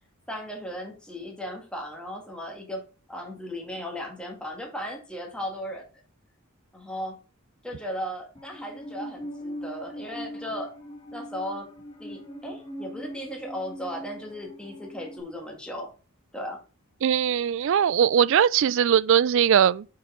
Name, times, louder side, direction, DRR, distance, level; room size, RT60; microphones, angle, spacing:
voice 1, 0.3-5.8 6.7-7.2 7.6-10.7 11.1-11.7 12.0-15.9 16.3-16.6, equal, 5° left, 2.0 m, -36 dB
Musical instrument, 8.3-15.2, equal, 25° left, 1.8 m, -40 dB
voice 2, 17.0-19.9, right 8 dB, 60° right, 0.3 m, -20 dB
9.0 x 4.8 x 3.7 m
head